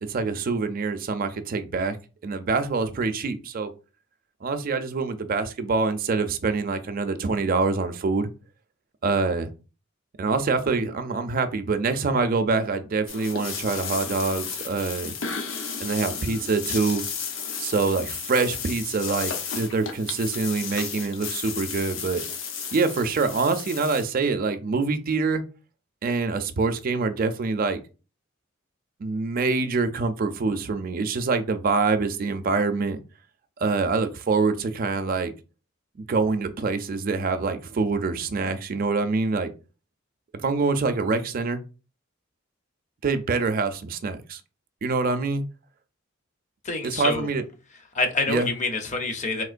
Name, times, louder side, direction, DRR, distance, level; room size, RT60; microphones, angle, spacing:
voice 1, 0.1-2.0 2.2-3.7 4.4-8.3 9.0-9.5 10.2-15.1 15.8-17.0 17.6-22.2 22.7-25.4 26.0-27.8 29.0-33.0 33.6-35.3 36.0-39.5 40.3-41.6 43.0-44.4 44.8-45.4 46.8-47.4 48.3-48.5, right 4 dB, 45° right, 0.4 m, -25 dB
sound 1, 13.1-24.0, left 6 dB, 70° left, 0.7 m, -33 dB
voice 2, 46.6-47.3 47.9-49.4, left 3 dB, 35° left, 0.6 m, -26 dB
3.6 x 2.8 x 2.4 m
head